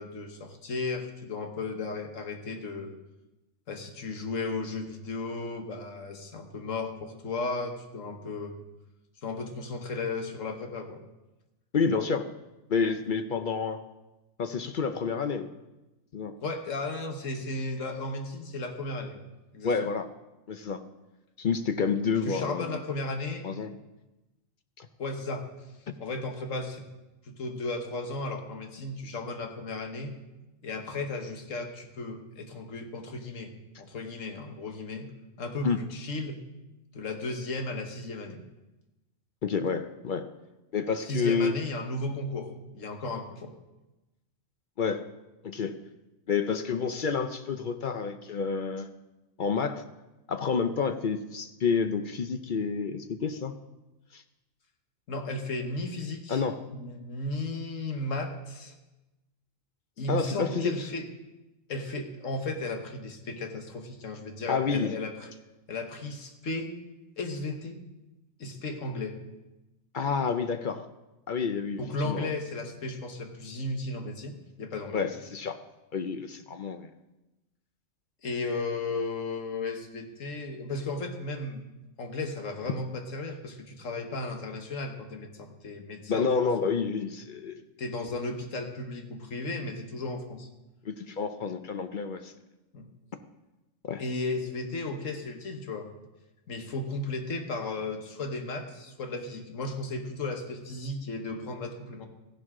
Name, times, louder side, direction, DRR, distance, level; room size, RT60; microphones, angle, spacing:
voice 1, 0.0-2.9 3.7-8.6 9.2-11.0 16.4-19.2 19.5-19.7 22.3-23.4 25.0-25.4 26.0-26.9 27.2-30.1 30.6-35.1 35.4-36.4 36.9-38.4 41.1-43.5 55.1-56.4 56.7-58.7 60.0-61.1 61.7-65.1 65.7-66.7 67.2-67.8 68.4-69.2 71.8-75.1 78.2-81.6 82.0-86.5 87.8-90.5 92.7-92.9 94.0-95.9 96.5-102.1, left 2 dB, 75° left, 4 dB, 1.6 m, -35 dB
voice 2, 11.7-12.3 12.7-13.8 14.4-15.5 16.1-16.4 19.6-20.1 20.5-20.8 21.4-22.8 23.4-23.8 24.8-24.9 25.9-26.0 35.6-35.8 39.4-40.3 40.7-41.6 44.8-45.0 45.4-45.7 46.3-48.9 49.4-49.8 50.3-53.5 54.1-54.2 56.3-56.6 60.1-60.7 64.5-64.9 69.9-70.9 71.3-72.3 74.9-75.6 75.9-76.9 86.1-87.7 90.8-92.3 93.8-94.0, left 5 dB, 50° left, 8 dB, 0.6 m, -29 dB
15.0 x 11.0 x 3.7 m, 1.0 s
omnidirectional pair, 1.4 m